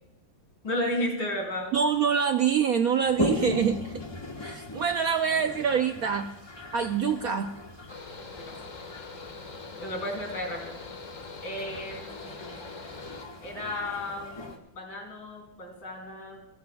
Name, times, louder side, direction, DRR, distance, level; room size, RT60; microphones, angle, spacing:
voice 1, 0.6-1.7 8.5-8.6 9.8-10.7 11.4-12.5 13.4-16.4, left 1 dB, 80° left, 2 dB, 3.8 m, -33 dB
voice 2, 1.7-4.0 4.4-6.3 6.7-7.5, right 7 dB, 65° right, 7 dB, 0.9 m, -25 dB
Toilet flush, 3.1-14.6, left 1 dB, 15° left, 1.1 m, -38 dB
Mechanical fan, 7.9-13.2, left 4 dB, 45° left, 1.8 m, -43 dB
28.0 x 12.0 x 2.3 m, 0.90 s
omnidirectional pair, 2.1 m